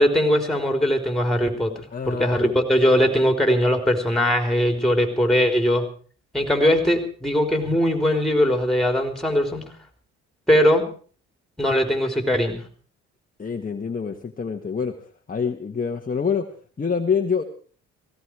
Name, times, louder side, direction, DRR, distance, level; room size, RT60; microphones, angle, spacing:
voice 1, 0.0-5.9 6.3-9.6 10.5-10.9 11.6-12.6, equal, ahead, 5 dB, 3.9 m, -20 dB
voice 2, 1.9-2.5 13.4-15.0 15.3-16.5 16.8-17.4, left 6 dB, 30° left, 3 dB, 1.4 m, -26 dB
17.5 x 16.5 x 4.8 m, 0.42 s
cardioid pair, 90°, 30 cm